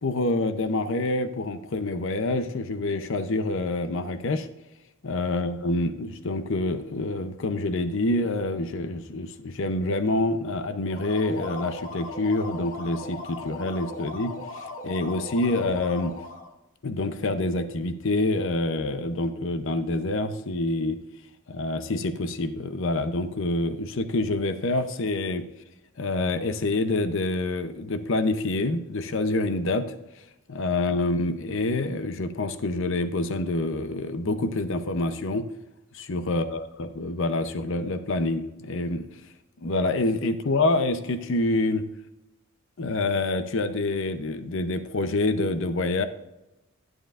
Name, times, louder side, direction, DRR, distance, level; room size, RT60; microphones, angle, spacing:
voice 1, 0.0-4.5 5.0-16.2 16.8-21.0 21.5-25.5 26.0-30.0 30.5-35.5 35.9-39.1 39.6-41.8 42.8-46.1, left 2 dB, 60° left, 10 dB, 0.6 m, -27 dB
sound 1, 10.8-16.5, left 3 dB, 35° left, 1.1 m, -38 dB
11.5 x 7.8 x 2.5 m, 0.95 s
head